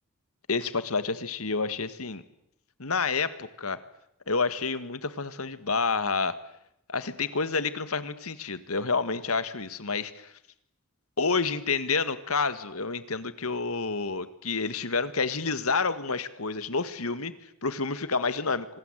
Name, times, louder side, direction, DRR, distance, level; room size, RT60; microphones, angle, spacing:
voice 1, 0.5-2.2 2.8-3.8 4.3-6.4 6.9-10.3 11.2-18.7, left 4 dB, 80° left, 13 dB, 1.8 m, -29 dB
26.0 x 20.0 x 9.1 m, 0.78 s
head